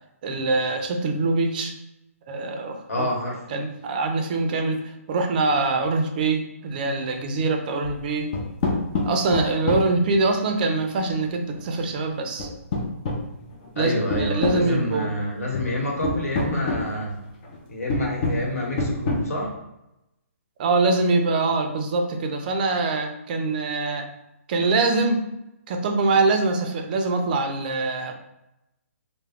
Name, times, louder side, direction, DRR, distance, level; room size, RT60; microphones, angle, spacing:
voice 1, 0.2-1.7 2.3-3.1 3.5-8.3 9.0-12.5 13.8-15.1 20.6-24.1 24.5-25.2 25.7-28.1, right 3 dB, 35° right, 4 dB, 0.4 m, -24 dB
voice 2, 2.9-3.4 13.7-17.1 17.7-19.5, left 1 dB, 75° left, -2 dB, 1.1 m, -28 dB
sound 1, 7.8-8.0 8.3-10.3 11.5-11.9 12.4-13.7 14.1-14.7 15.5-15.7 16.0-16.9 17.4-17.6 17.9-18.5 18.8-19.2, left 2 dB, 30° left, 0.5 m, -25 dB
2.2 x 2.0 x 3.4 m, 0.89 s
hypercardioid pair, 155°, 8 cm